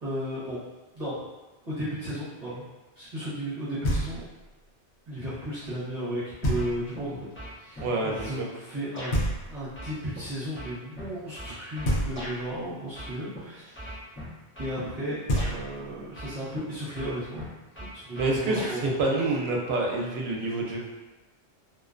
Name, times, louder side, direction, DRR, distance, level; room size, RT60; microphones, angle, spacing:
voice 1, 0.0-0.6 0.9-1.2 1.7-2.7 3.0-4.2 5.1-13.9 14.6-15.2 15.5-17.4 17.9-18.9, equal, 40° right, -12 dB, 0.8 m, -34 dB
Knock, 3.8-4.5 6.4-7.1 9.1-9.9 11.8-12.6 14.9-15.0 15.3-16.1, equal, 80° left, 0.9 m, -29 dB
sound 1, 6.6-7.1 7.3-8.4 9.0-9.1 9.8-12.4 12.9-13.4 13.7-14.8 15.4-15.5 16.2-16.6 16.9-18.8, equal, 20° left, 0.3 m, -40 dB
voice 2, 7.8-8.5 18.2-20.8, right 2 dB, 75° right, -1 dB, 0.8 m, -27 dB
2.4 x 2.1 x 2.4 m, 1.1 s
omnidirectional pair, 1.1 m